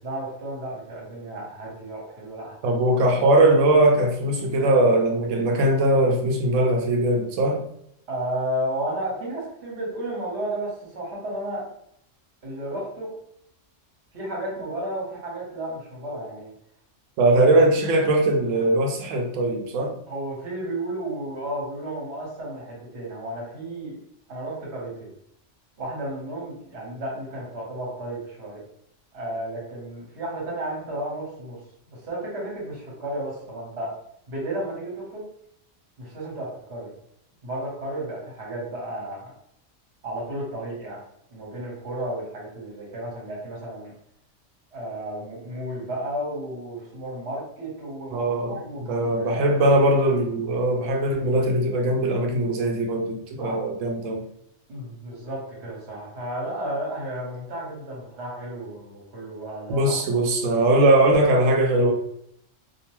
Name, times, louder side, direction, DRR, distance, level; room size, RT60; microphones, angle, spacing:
voice 1, 0.0-2.8 8.1-11.6 12.4-13.1 14.1-16.5 20.1-24.0 24.3-25.1 25.8-28.6 29.1-31.6 32.0-33.9 34.3-35.2 36.0-36.9 37.4-39.3 40.0-41.0 41.3-43.9 44.7-49.5 53.4-53.6 54.7-59.9, right 1 dB, 60° right, -4 dB, 1.3 m, -33 dB
voice 2, 2.6-7.6 17.2-20.0 48.1-54.3 59.7-61.9, right 1 dB, 90° right, 2 dB, 1.0 m, -20 dB
2.6 x 2.1 x 2.9 m, 0.73 s
omnidirectional pair, 1.3 m